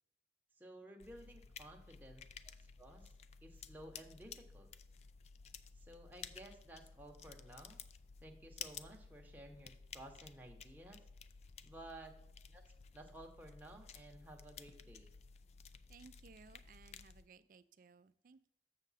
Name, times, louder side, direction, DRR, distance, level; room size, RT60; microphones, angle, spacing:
voice 1, 0.6-2.2 2.6-3.1 3.4-4.7 5.7-7.8 8.2-11.0 11.6-12.2 12.5-12.7 12.9-15.1, right 1 dB, 10° right, 2 dB, 0.8 m, -55 dB
sound 1, 1.0-17.3, left 6 dB, 35° left, 0.3 m, -54 dB
voice 2, 15.9-18.5, right 5 dB, 50° right, 15 dB, 0.4 m, -61 dB
7.2 x 6.5 x 4.1 m, 0.76 s
head